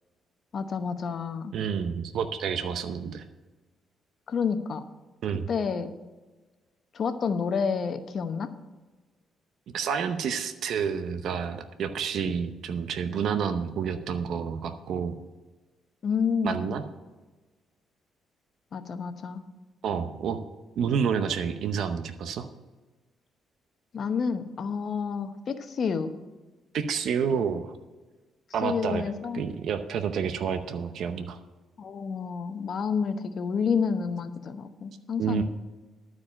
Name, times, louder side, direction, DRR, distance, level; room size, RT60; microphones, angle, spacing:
voice 1, 0.5-1.5 4.3-4.8 5.5-5.9 6.9-8.5 16.0-16.7 18.7-19.4 23.9-26.1 28.6-29.4 31.8-35.4, left 6 dB, 55° left, 8 dB, 0.9 m, -29 dB
voice 2, 1.5-3.2 5.2-5.5 9.7-15.1 16.4-16.8 19.8-20.4 20.8-22.5 26.7-27.7 28.5-29.0 29.3-31.4 35.2-35.4, right 7 dB, 70° right, 8 dB, 0.8 m, -29 dB
12.0 x 4.8 x 8.6 m, 1.3 s
cardioid pair, 90°, 0 cm